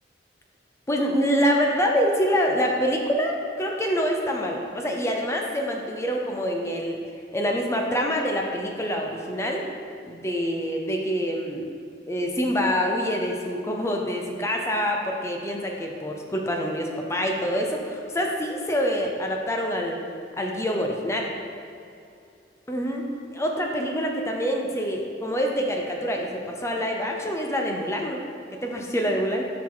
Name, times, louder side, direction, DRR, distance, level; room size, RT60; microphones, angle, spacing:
voice 1, 0.9-7.0 7.3-9.6 10.0-11.7 12.1-20.0 20.4-21.3 22.7-23.0 23.3-28.2 28.5-29.5, equal, 15° left, 1 dB, 0.6 m, -26 dB
7.1 x 4.8 x 3.9 m, 2.6 s
head